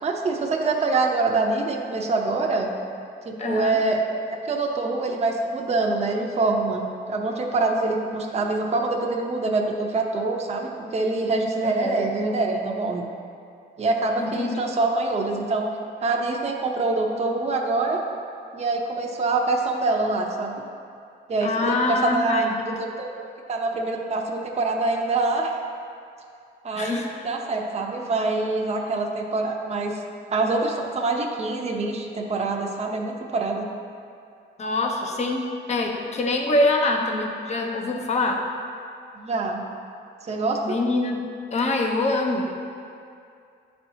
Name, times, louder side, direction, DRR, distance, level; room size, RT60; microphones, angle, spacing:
voice 1, 0.0-2.7 3.2-4.0 4.3-13.1 13.8-15.7 16.0-18.0 18.5-20.6 21.3-25.5 26.6-30.0 30.3-33.7 39.1-39.7 40.2-40.8, right 3 dB, 35° right, 1 dB, 0.7 m, -25 dB
voice 2, 3.4-3.8 11.6-12.0 14.2-14.6 21.4-22.5 26.7-27.1 34.6-38.5 40.6-42.5, left 2 dB, 35° left, 1 dB, 0.8 m, -24 dB
10.5 x 4.4 x 2.8 m, 2.4 s
cardioid pair, 90°, 20 cm